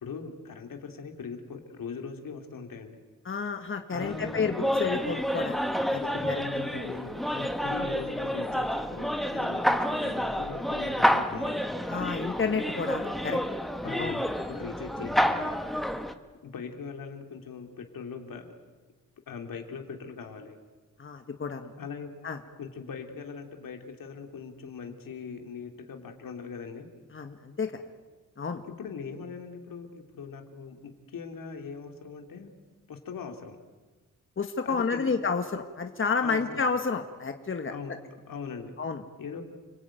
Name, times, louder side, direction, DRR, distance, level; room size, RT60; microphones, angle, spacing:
voice 1, 0.0-3.0 3.9-4.5 6.1-7.1 7.6-11.6 13.8-15.6 16.4-18.5 19.3-20.6 21.8-22.1 22.6-26.9 28.8-32.5 32.9-33.6 34.6-35.1 36.2-36.6 37.7-38.0 38.3-38.7 39.2-39.4, left 5 dB, 80° left, 4 dB, 3.3 m, -40 dB
voice 2, 3.2-5.6 5.9-6.4 7.3-7.5 11.9-13.4 14.0-14.2 21.0-21.7 22.2-22.4 27.1-27.7 28.4-28.6 34.4-37.7 38.8-39.0, left 5 dB, 40° left, 6 dB, 1.7 m, -30 dB
sound 1, 4.0-16.1, equal, ahead, 1.5 m, -29 dB
30.0 x 20.0 x 9.2 m, 1.3 s
wide cardioid pair, 115°, 33 cm